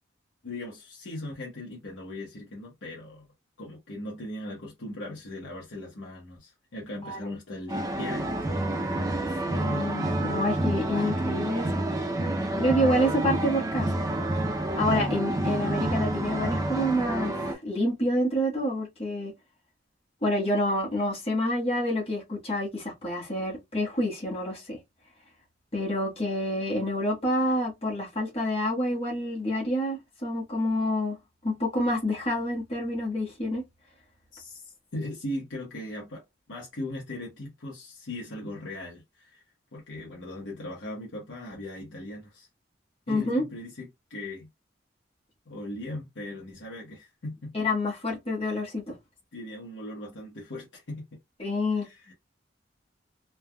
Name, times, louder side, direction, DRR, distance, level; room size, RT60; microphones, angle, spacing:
voice 1, 0.4-3.3 3.6-8.8 34.3-39.4 39.7-42.5 43.1-44.5 45.5-47.5 49.3-51.2 51.7-52.1, left 1 dB, 90° left, 1.0 m, -39 dB
sound 1, 7.7-17.6, right 1 dB, 20° right, 0.5 m, -28 dB
voice 2, 9.5-11.7 12.6-13.9 14.7-19.3 20.2-24.8 25.7-31.2 31.4-33.6 43.1-43.4 47.5-49.0 51.4-51.9, equal, 30° left, 1.4 m, -28 dB
3.2 x 2.3 x 2.2 m
head